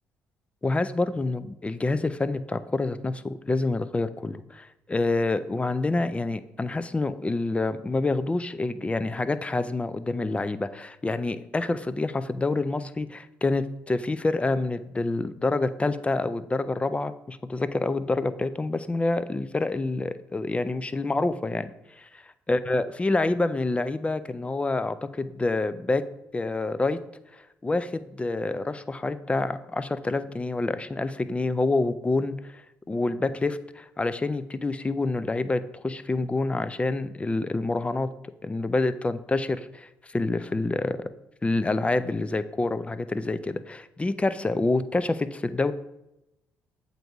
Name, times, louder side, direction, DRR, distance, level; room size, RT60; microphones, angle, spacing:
voice 1, 0.6-22.1 22.5-26.0 26.3-27.0 27.3-32.6 32.9-38.1 38.4-41.0 41.4-45.7, left 2 dB, 20° left, 13 dB, 0.4 m, -27 dB
7.7 x 2.7 x 4.6 m, 0.90 s
supercardioid pair, 65°, 6 cm